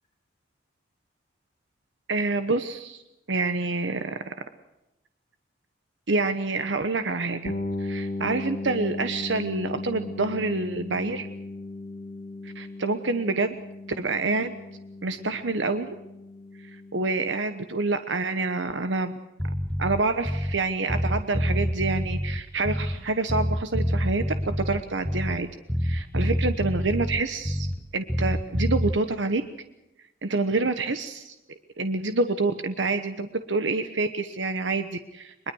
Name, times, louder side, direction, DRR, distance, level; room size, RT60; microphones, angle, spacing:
voice 1, 2.1-3.0 3.3-4.3 6.1-7.5 7.8-11.3 12.4-13.5 14.0-14.5 15.0-16.0 16.9-19.1 19.8-25.5 25.8-27.7 27.9-29.4 30.2-31.3 31.8-35.5, right 3 dB, 80° right, 9 dB, 1.1 m, -27 dB
sound 1, 7.4-17.2, left 2 dB, 45° left, 1.9 m, -36 dB
Bass guitar, 19.4-20.6 20.9-23.0 23.3-25.4 25.7-27.8 28.1-29.0, equal, 5° left, 0.9 m, -27 dB
22.5 x 22.0 x 6.3 m, 0.94 s
head